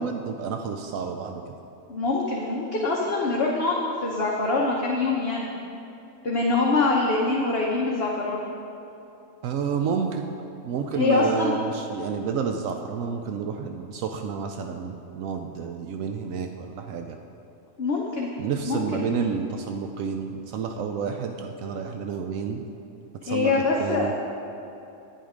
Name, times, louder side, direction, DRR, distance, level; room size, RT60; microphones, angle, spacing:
voice 1, 0.0-1.4 9.4-10.3 10.6-17.2 18.4-22.6 23.2-23.5 23.8-24.1, right 6 dB, 80° right, 5 dB, 1.0 m, -30 dB
voice 2, 1.9-5.5 6.2-8.4 11.0-11.6 17.8-18.3 18.6-19.1 23.3-24.1, left 3 dB, 50° left, -3 dB, 1.2 m, -24 dB
10.5 x 9.6 x 5.0 m, 2.8 s
omnidirectional pair, 1.4 m